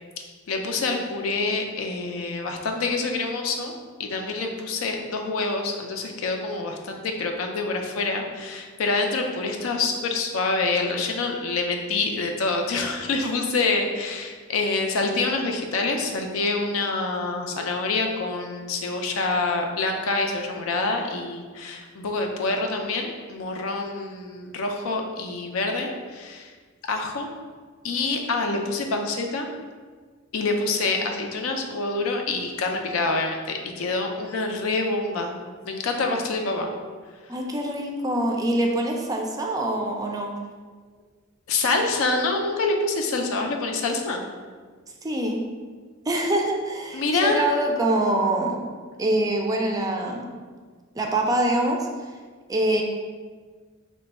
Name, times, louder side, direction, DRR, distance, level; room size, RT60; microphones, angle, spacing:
voice 1, 0.5-3.7 4.0-26.5 26.9-27.3 27.8-29.5 30.3-35.3 35.6-36.7 41.5-44.2 46.9-47.4, left 3 dB, 80° left, 3 dB, 0.5 m, -26 dB
voice 2, 37.3-40.3 45.0-45.4 46.1-48.7 49.0-50.3 51.0-51.9 52.5-52.8, right 1 dB, 15° right, 1 dB, 0.3 m, -24 dB
3.2 x 2.2 x 4.0 m, 1.5 s
head